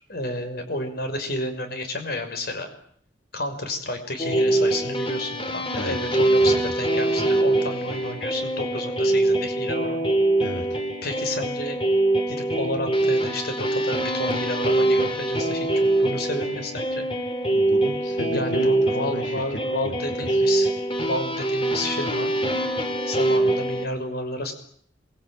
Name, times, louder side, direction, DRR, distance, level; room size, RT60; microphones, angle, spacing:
voice 1, 0.1-2.7 3.3-10.1 11.0-11.8 12.3-17.1 18.3-20.7 21.1-22.3 23.1-24.5, left 1 dB, 60° left, 7 dB, 6.0 m, -31 dB
sound 1, 4.2-23.9, right 1 dB, 30° left, 3.2 m, -23 dB
voice 2, 5.7-6.7 10.4-10.8 17.5-19.6 19.8-20.4, left 1 dB, 85° left, 4 dB, 3.6 m, -34 dB
27.5 x 22.5 x 9.2 m, 0.64 s
head